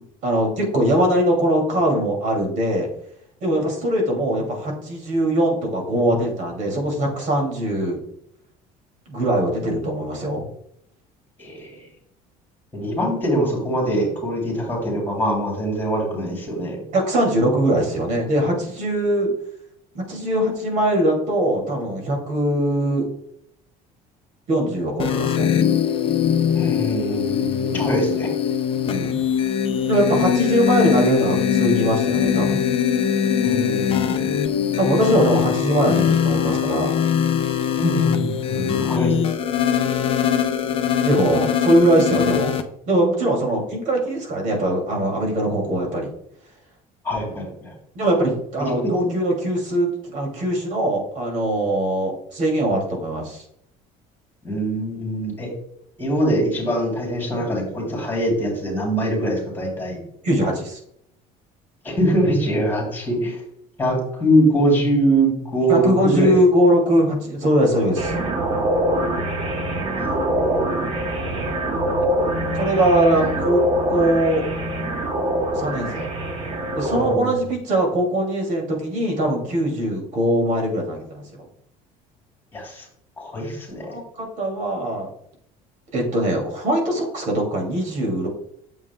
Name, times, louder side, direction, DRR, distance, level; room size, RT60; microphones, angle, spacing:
voice 1, 0.2-2.9 3.4-8.0 9.1-10.5 16.9-19.3 19.9-23.1 24.5-25.5 27.7-28.0 28.8-29.2 29.9-32.6 34.2-37.0 38.5-38.9 41.0-42.5 42.9-46.1 47.3-47.4 47.9-53.4 60.2-60.8 65.7-68.1 71.3-71.6 72.5-73.6 73.9-74.4 75.5-76.1 76.7-81.3 83.9-85.1 85.9-88.3, right 1 dB, 55° right, 1 dB, 2.5 m, -21 dB
voice 2, 11.4-11.7 12.7-16.8 26.5-28.3 33.4-34.3 37.8-39.1 47.0-47.7 48.6-49.1 54.4-55.5 56.0-60.0 61.8-63.4 63.8-66.4 69.9-70.1 72.7-72.9 76.9-77.3 82.5-82.8 83.2-83.9, right 1 dB, 15° left, -2 dB, 3.1 m, -23 dB
sound 1, 25.0-42.6, left 8 dB, 35° left, 0.6 m, -21 dB
sound 2, 68.0-77.1, right 1 dB, 35° right, 1.3 m, -24 dB
8.8 x 7.3 x 2.3 m, 0.72 s
cardioid pair, 135°, 16 cm